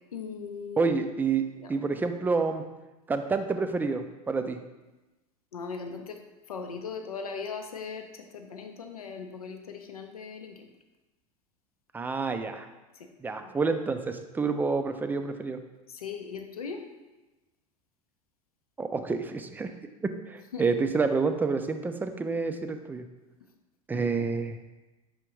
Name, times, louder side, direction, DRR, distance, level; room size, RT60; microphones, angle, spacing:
voice 1, 0.1-0.9 1.6-1.7 5.5-6.2 6.5-10.7 12.9-13.1 13.4-13.5 15.9-16.8 20.5-20.7, left 5 dB, 90° left, 4 dB, 0.5 m, -39 dB
voice 2, 0.8-1.4 1.7-2.6 3.1-4.6 11.9-12.7 13.2-15.6 18.8-19.7 20.3-23.0 23.9-24.6, right 4 dB, 10° right, 8 dB, 0.3 m, -28 dB
5.0 x 3.5 x 3.0 m, 1.1 s
hypercardioid pair, 85°, 18 cm